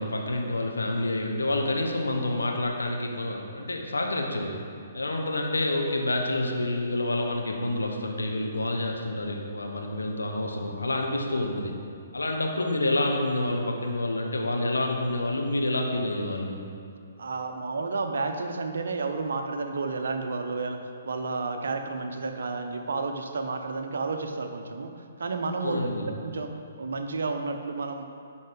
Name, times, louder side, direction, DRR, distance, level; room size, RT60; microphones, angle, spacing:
voice 1, 0.0-4.6 4.9-11.7 12.1-16.6 25.6-26.1, left 1 dB, 80° left, 2 dB, 0.9 m, -28 dB
voice 2, 17.2-20.8 21.0-24.9 25.2-26.5 26.8-28.0, right 3 dB, 65° right, 5 dB, 0.6 m, -31 dB
10.5 x 4.2 x 3.7 m, 2.4 s
figure-of-eight pair, 125°, 0 cm